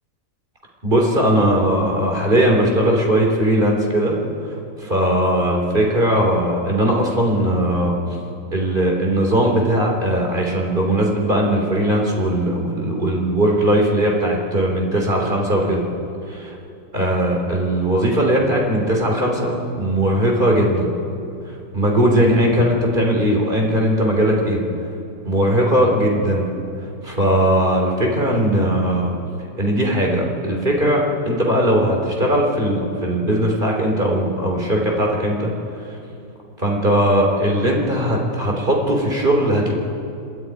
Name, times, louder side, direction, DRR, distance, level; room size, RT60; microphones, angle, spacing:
voice 1, 0.8-4.2 4.4-4.5 4.8-8.0 8.5-15.9 16.9-20.9 21.7-24.6 25.3-26.5 27.0-29.2 29.6-35.5 35.8-36.0 36.6-39.7, right 1 dB, 25° right, 0 dB, 3.4 m, -19 dB
26.5 x 12.5 x 9.4 m, 2.6 s
omnidirectional pair, 2.0 m